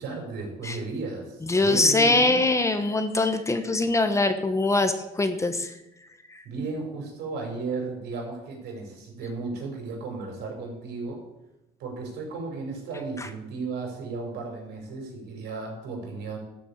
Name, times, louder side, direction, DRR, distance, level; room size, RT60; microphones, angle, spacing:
voice 1, 0.0-2.4 6.4-11.2 11.8-16.4, right 3 dB, 80° right, 1 dB, 5.5 m, -34 dB
voice 2, 1.5-5.7 6.3-6.4, left 2 dB, 15° left, 8 dB, 1.3 m, -23 dB
13.0 x 7.0 x 8.4 m, 0.91 s
cardioid pair, 110°, 17 cm